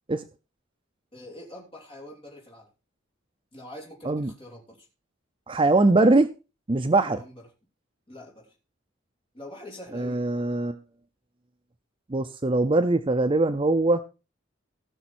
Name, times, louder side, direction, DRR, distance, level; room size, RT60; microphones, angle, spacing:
voice 1, 1.1-2.7 3.5-4.9 7.0-7.4 8.1-8.6 9.3-10.2, left 1 dB, 30° left, -2 dB, 3.4 m, -44 dB
voice 2, 5.5-6.3 6.7-7.2 9.9-10.8 12.1-14.0, right 2 dB, 25° right, 8 dB, 0.5 m, -22 dB
17.0 x 6.1 x 4.3 m, 0.31 s
head